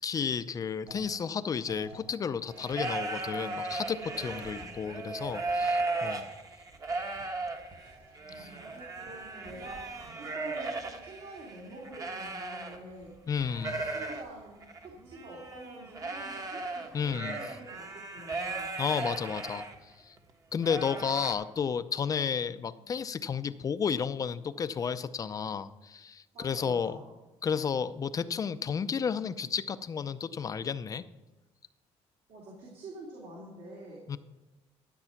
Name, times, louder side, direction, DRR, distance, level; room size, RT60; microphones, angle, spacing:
voice 1, 0.0-6.3 8.4-8.5 13.3-13.8 16.9-17.4 18.8-20.2 20.5-27.0 27.4-31.0 34.1-34.2, left 6 dB, 30° left, 12 dB, 0.5 m, -32 dB
sound 1, 0.9-6.6 6.9-7.5 7.8-8.4 8.7-9.2 9.6-10.1, right 2 dB, 85° right, 4.1 m, -55 dB
sound 2, 2.5-13.1 13.4-19.7 20.2-20.3 20.6-21.3, right 3 dB, 30° right, 1.2 m, -36 dB
voice 2, 8.3-13.1 13.7-18.8 22.5-22.7 26.3-27.1 32.3-34.0, right 2 dB, 65° right, -4 dB, 3.1 m, -47 dB
12.5 x 8.0 x 5.9 m, 1.1 s
cardioid pair, 135°, 11 cm